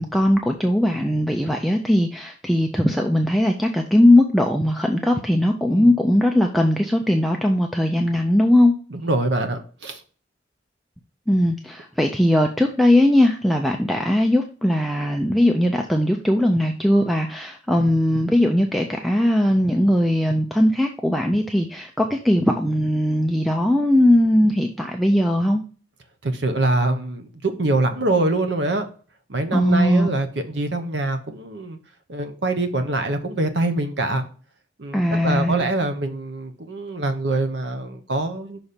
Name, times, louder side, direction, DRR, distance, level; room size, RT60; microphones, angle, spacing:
voice 1, 0.0-8.7 11.3-25.6 29.5-30.1 34.9-35.6, left 1 dB, ahead, 3 dB, 0.5 m, -19 dB
voice 2, 8.9-10.0 26.2-28.9 29.3-31.8 32.1-34.3 34.8-38.6, right 2 dB, 65° right, 8 dB, 0.9 m, -24 dB
6.0 x 4.2 x 5.1 m, 0.39 s
head